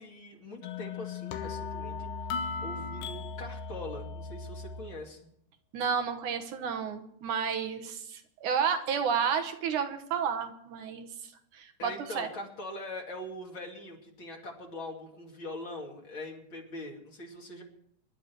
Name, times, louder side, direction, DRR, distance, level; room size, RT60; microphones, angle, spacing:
voice 1, 0.0-2.3 2.6-5.2 11.8-17.6, left 1 dB, 40° left, 0 dB, 3.0 m, -42 dB
sound 1, 0.6-5.0, left 4 dB, 85° left, 2.7 m, -37 dB
voice 2, 5.7-11.1 11.5-12.3, right 7 dB, 75° right, 7 dB, 2.7 m, -31 dB
25.5 x 11.5 x 4.6 m, 0.71 s
omnidirectional pair, 3.6 m